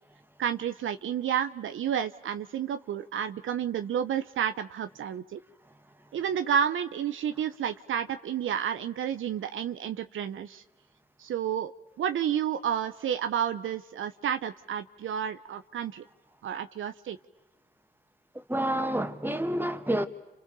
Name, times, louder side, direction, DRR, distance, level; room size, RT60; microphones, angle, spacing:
voice 1, 0.4-5.4 6.1-10.6 11.2-11.7 12.0-16.0 16.4-17.2, right 9 dB, 70° right, 1.0 m, -30 dB
voice 2, 18.3-20.1, right 1 dB, 10° right, 2.4 m, -29 dB
29.5 x 27.5 x 7.0 m
hypercardioid pair, 45°, 21 cm